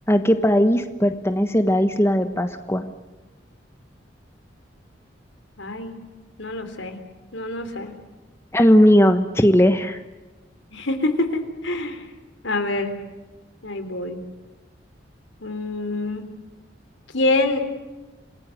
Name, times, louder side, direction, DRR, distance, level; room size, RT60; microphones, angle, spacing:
voice 1, 0.1-2.8 8.5-10.0, equal, 15° left, 8 dB, 1.2 m, -18 dB
voice 2, 5.6-6.0 6.4-7.0 7.3-7.9 10.7-12.1 12.4-12.9 13.6-14.2 15.4-16.3 17.1-17.6, left 2 dB, 80° left, 8 dB, 3.6 m, -25 dB
28.0 x 20.0 x 7.8 m, 1.1 s
head